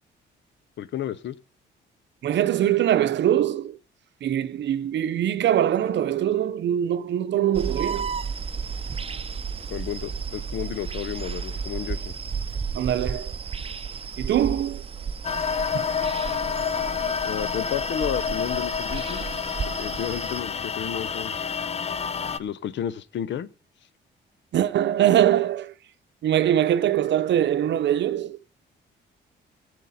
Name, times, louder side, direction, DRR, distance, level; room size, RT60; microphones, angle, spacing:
voice 1, 0.8-1.4 9.7-12.1 17.2-19.2 19.8-21.4 22.4-23.5, left 10 dB, 65° left, 0.8 m, -32 dB
voice 2, 2.2-3.8 4.2-8.1 12.7-13.3 14.2-14.8 15.7-15.8 24.5-25.7 26.2-28.4, right 11 dB, 65° right, 0.7 m, -22 dB
sound 1, 7.5-20.4, right 6 dB, 30° right, 0.7 m, -33 dB
sound 2, 15.2-22.4, left 6 dB, 30° left, 0.6 m, -29 dB
17.0 x 8.2 x 4.2 m
cardioid pair, 90°, 20 cm